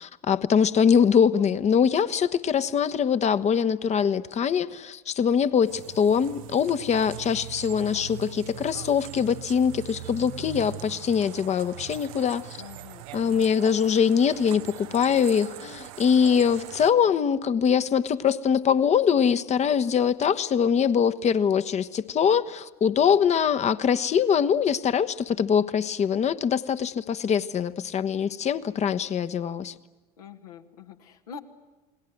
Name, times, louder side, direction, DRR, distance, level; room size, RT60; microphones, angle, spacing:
voice 1, 0.0-12.5 13.1-29.7, left 7 dB, 35° left, 11 dB, 1.2 m, -23 dB
voice 2, 0.9-1.8 7.7-8.0 12.6-13.6 30.2-31.4, left 7 dB, 75° left, 4 dB, 2.0 m, -46 dB
sound 1, 5.7-16.9, right 14 dB, 65° right, 0.9 m, -41 dB
29.5 x 20.0 x 9.2 m, 1.2 s
figure-of-eight pair, 65°, 20 cm